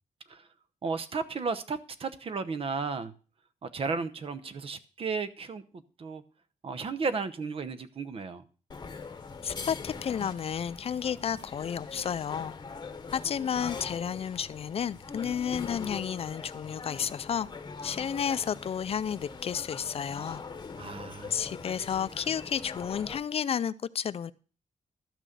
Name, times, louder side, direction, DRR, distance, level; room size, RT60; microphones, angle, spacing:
voice 1, 0.8-3.1 3.6-6.2 6.6-8.4 20.8-21.5, right 4 dB, 45° right, 12 dB, 0.9 m, -34 dB
sound 1, 8.7-23.2, left 4 dB, 35° left, 1.0 m, -42 dB
voice 2, 9.4-12.5 13.1-17.5 17.8-20.4 21.3-24.3, left 8 dB, 50° left, 16 dB, 0.4 m, -32 dB
12.5 x 6.2 x 6.7 m, 0.38 s
wide cardioid pair, 155°, 13 cm